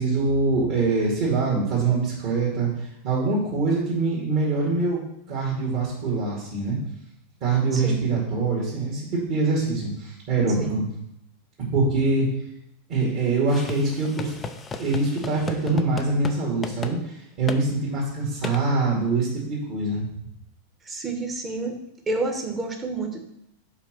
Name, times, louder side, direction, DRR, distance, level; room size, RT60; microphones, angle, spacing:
voice 1, 0.0-5.0 5.3-6.8 7.4-10.8 11.7-12.3 12.9-14.4 14.8-20.0, right 3 dB, 45° right, -5 dB, 2.5 m, -24 dB
voice 2, 7.7-8.0 10.6-10.8 20.8-21.8 22.1-23.2, right 3 dB, 20° right, 3 dB, 1.4 m, -29 dB
sound 1, 13.5-16.4 16.6-17.0 17.5-17.6 18.4-18.6, left 4 dB, 20° left, 0.6 m, -34 dB
5.6 x 5.0 x 6.4 m, 0.80 s
figure-of-eight pair, 90°, 0 cm